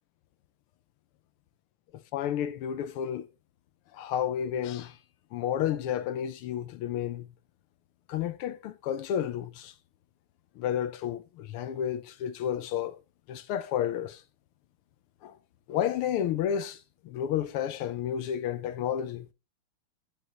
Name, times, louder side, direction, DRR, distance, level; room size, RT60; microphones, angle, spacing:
voice 1, 2.1-3.3 3.9-5.0 5.3-7.3 8.1-9.7 10.6-13.0 13.3-14.2 15.2-15.4 15.7-19.3, left 10 dB, 85° left, 1.6 m, -31 dB
9.9 x 9.3 x 3.0 m
omnidirectional pair, 2.4 m